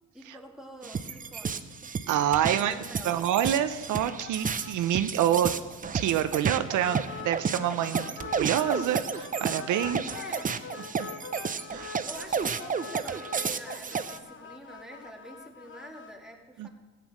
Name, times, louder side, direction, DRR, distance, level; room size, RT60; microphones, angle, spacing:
voice 1, 0.1-1.7 2.5-3.3 7.9-8.2 10.1-10.6 12.0-16.7, right 1 dB, ahead, 0 dB, 1.9 m, -47 dB
sound 1, 0.8-14.2, right 6 dB, 25° right, 0.6 m, -32 dB
voice 2, 2.1-2.8 3.0-5.5 5.9-10.1 11.0-11.1 11.7-12.0 16.6-16.7, right 11 dB, 80° right, 10 dB, 0.6 m, -27 dB
sound 2, 4.2-4.7 5.0-5.1 5.5-5.6 6.7-8.9 9.1-16.1, left 6 dB, 40° left, 0.9 m, -43 dB
14.5 x 8.4 x 6.2 m, 1.3 s
cardioid pair, 90°, 30 cm